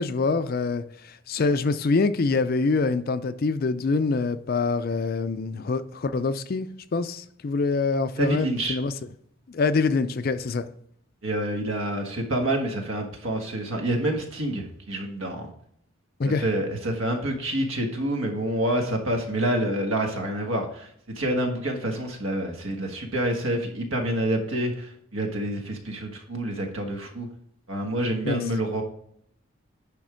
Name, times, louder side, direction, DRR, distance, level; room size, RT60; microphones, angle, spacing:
voice 1, 0.0-8.9 9.5-10.7 16.2-16.4 28.2-28.4, left 4 dB, 45° left, 0.4 m, -25 dB
voice 2, 8.2-8.8 11.2-15.5 16.2-20.9 21.1-27.3 27.7-28.8, right 1 dB, 70° right, 1.5 m, -27 dB
10.5 x 3.5 x 5.0 m
head